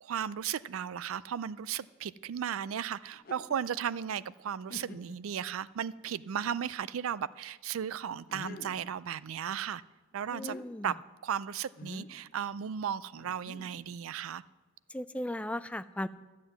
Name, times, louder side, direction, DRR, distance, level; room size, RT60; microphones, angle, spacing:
voice 1, 0.0-9.8 10.1-10.6 10.8-11.0 11.2-14.4, right 8 dB, 85° right, 0.4 m, -35 dB
sound 1, 3.1-3.6 4.2-4.3 4.7-5.3 5.9-6.0 8.3-8.9 10.2-10.6 11.8-12.2 13.2-14.0, left 2 dB, 45° left, 0.7 m, -47 dB
voice 2, 10.3-10.9 14.9-16.1, left 1 dB, 5° left, 0.3 m, -36 dB
13.0 x 7.5 x 8.0 m
head